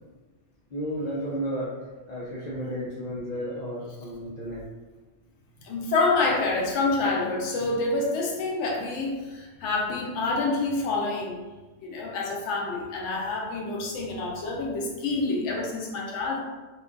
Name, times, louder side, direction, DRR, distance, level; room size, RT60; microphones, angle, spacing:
voice 1, 0.7-1.7 2.1-4.6, equal, 55° left, -8 dB, 0.5 m, -32 dB
voice 2, 5.6-11.4 11.8-16.4, left 3 dB, 80° left, -2 dB, 0.9 m, -27 dB
2.6 x 2.2 x 2.4 m, 1.2 s
omnidirectional pair, 1.2 m